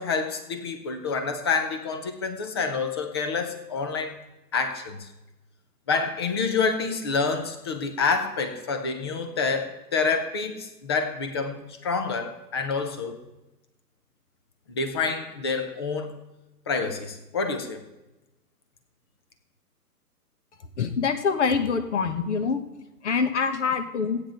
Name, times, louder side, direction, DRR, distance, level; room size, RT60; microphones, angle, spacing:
voice 1, 0.0-4.2 4.5-5.1 5.9-13.2 14.7-16.1 16.7-17.8, left 4 dB, 15° left, 7 dB, 0.6 m, -28 dB
voice 2, 20.8-22.6 23.0-24.2, left 5 dB, 45° left, 9 dB, 1.3 m, -25 dB
15.0 x 9.0 x 4.6 m, 1.0 s
figure-of-eight pair, 135°, 48 cm